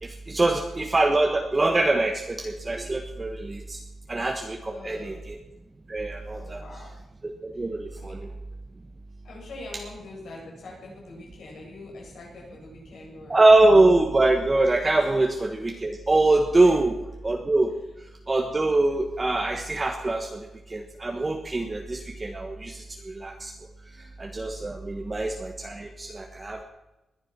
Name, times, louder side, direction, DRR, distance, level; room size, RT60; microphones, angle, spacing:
voice 1, 0.0-3.8 4.1-5.4 5.9-6.6 7.4-8.2 13.3-16.9 17.2-17.7 18.3-20.4 20.7-23.5 24.2-26.6, right 2 dB, 20° right, 3 dB, 1.3 m, -23 dB
voice 2, 4.6-5.2 6.3-6.9 7.5-7.7 8.0-8.2 9.2-13.4 16.6-16.7 23.9-24.2 25.0-25.1, left 2 dB, 75° left, -3 dB, 7.3 m, -44 dB
20.5 x 11.0 x 6.0 m, 1.0 s
wide cardioid pair, 170°, 0 cm